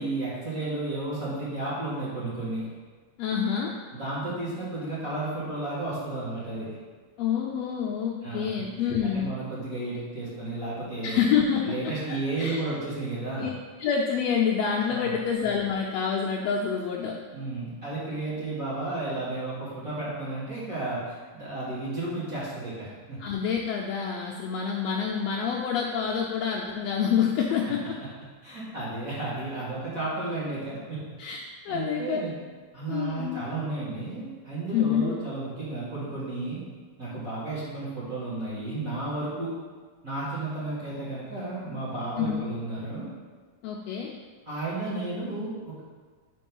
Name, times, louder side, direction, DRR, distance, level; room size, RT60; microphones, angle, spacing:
voice 1, 0.0-2.6 3.9-6.7 8.2-11.2 11.6-13.5 14.9-15.2 17.3-23.2 28.4-31.0 31.7-32.3 32.7-36.6 37.0-39.5 40.0-43.1 44.5-45.8, right 2 dB, 35° right, -10 dB, 1.8 m, -33 dB
voice 2, 3.2-3.7 7.2-9.3 11.0-11.7 12.1-12.6 13.4-13.5 13.8-17.2 23.2-27.8 31.2-31.4 31.6-32.2 32.9-33.4 34.7-35.2 42.2-42.4 43.6-44.1, left 7 dB, 80° left, -2 dB, 1.5 m, -27 dB
5.4 x 4.7 x 5.3 m, 1.5 s
omnidirectional pair, 3.4 m